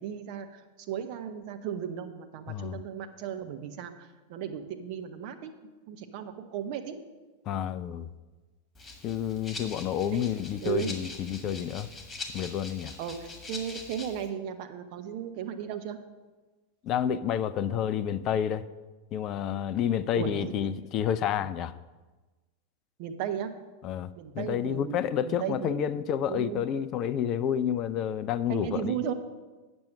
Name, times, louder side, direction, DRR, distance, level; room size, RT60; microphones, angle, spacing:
voice 1, 0.0-5.5 5.9-7.0 10.1-11.0 13.0-16.0 20.1-20.5 23.0-23.5 24.2-25.0 25.2-25.9 26.3-26.6 28.5-29.1, right 9 dB, 45° right, 7 dB, 0.8 m, -35 dB
voice 2, 2.5-2.8 7.5-8.1 9.0-11.9 12.3-12.9 16.8-18.6 19.1-21.7 23.8-28.9, left 9 dB, 35° left, 14 dB, 0.4 m, -29 dB
Rattle (instrument), 8.7-14.3, left 3 dB, 15° left, 1.6 m, -43 dB
8.7 x 6.2 x 6.4 m, 1.2 s
figure-of-eight pair, 90°, 0 cm